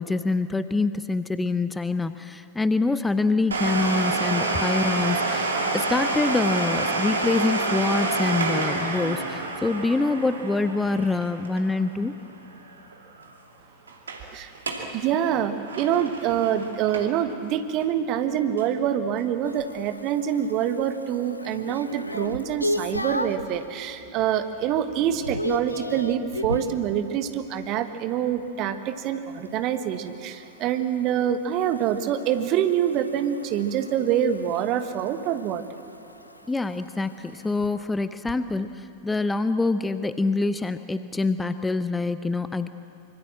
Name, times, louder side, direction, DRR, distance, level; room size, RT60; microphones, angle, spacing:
voice 1, 0.0-12.2 36.5-42.7, left 3 dB, 10° left, 12 dB, 0.6 m, -25 dB
Domestic sounds home sounds, 3.5-12.9 13.2-13.3 13.9-14.2 14.5-14.9 15.3-17.3 17.8-17.9 18.6-18.7, right 3 dB, 70° right, 2.4 m, -28 dB
voice 2, 14.9-35.6, right 9 dB, 40° right, 9 dB, 1.5 m, -26 dB
sound 1, 19.4-23.5 24.0-24.4 24.7-26.8 29.3-37.7, left 1 dB, 85° left, 0.9 m, -35 dB
25.0 x 24.5 x 7.7 m, 2.8 s
figure-of-eight pair, 90°, 0 cm